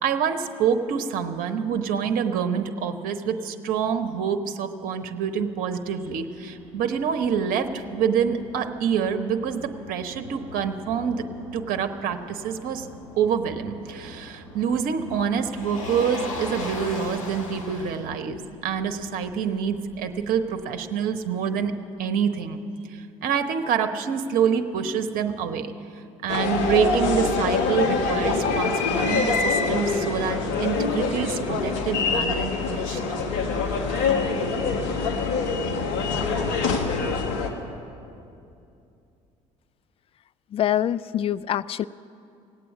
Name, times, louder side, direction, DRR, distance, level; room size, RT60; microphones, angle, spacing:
voice 1, 0.0-11.2 11.5-12.9 13.2-21.7 22.0-22.6 22.9-25.7 26.2-33.0, right 7 dB, 60° right, 8 dB, 0.9 m, -26 dB
Motor vehicle (road), 5.5-20.6, left 2 dB, 85° left, 1.8 m, -40 dB
sound 1, 26.3-37.5, left 4 dB, 70° left, 1.5 m, -25 dB
voice 2, 40.5-41.8, left 11 dB, 35° left, 17 dB, 0.4 m, -25 dB
18.0 x 8.5 x 8.3 m, 2.6 s
hypercardioid pair, 60°, 17 cm